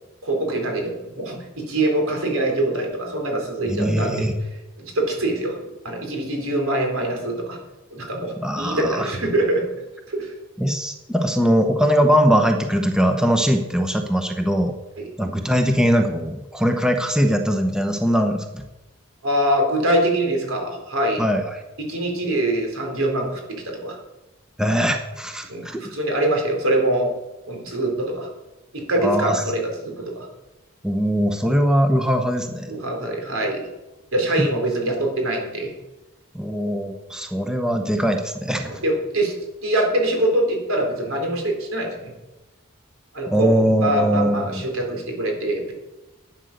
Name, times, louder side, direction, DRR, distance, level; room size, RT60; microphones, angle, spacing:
voice 1, 0.2-4.3 4.8-5.6 5.8-7.6 7.9-9.7 10.1-10.3 15.0-15.1 19.2-21.2 21.8-24.0 25.5-27.1 27.5-28.3 28.7-30.3 32.7-33.7 34.1-35.7 38.0-38.1 38.6-39.3 39.6-42.1 43.1-43.5 43.8-45.7, right 1 dB, 80° right, 2 dB, 3.8 m, -24 dB
voice 2, 3.7-4.3 8.4-9.1 10.6-14.7 15.2-18.6 21.2-21.6 24.6-25.9 29.0-29.4 30.8-32.7 36.3-38.7 43.3-44.6, equal, 5° right, 4 dB, 0.8 m, -21 dB
12.0 x 9.1 x 6.6 m, 1.0 s
head